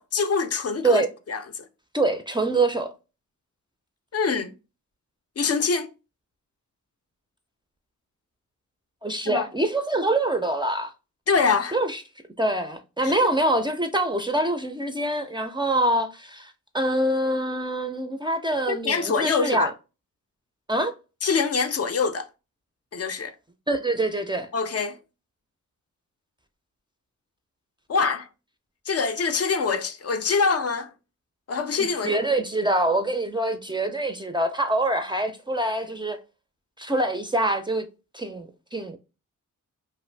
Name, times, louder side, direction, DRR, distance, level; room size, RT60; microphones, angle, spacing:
voice 1, 0.0-1.0 1.3-1.4 4.1-4.5 5.4-5.9 9.3-9.4 11.3-11.8 13.0-13.1 18.7-19.7 21.2-22.3 22.9-23.3 24.5-25.0 27.9-28.3 28.9-30.9 31.5-32.2, left 5 dB, 50° left, 0.4 m, -24 dB
voice 2, 1.9-2.9 9.0-10.9 11.7-12.0 12.4-19.7 20.7-20.9 23.7-24.5 31.8-36.2 36.8-37.9 38.1-39.0, right 1 dB, 15° right, 0.3 m, -25 dB
2.5 x 2.4 x 3.2 m
wide cardioid pair, 80°, 32 cm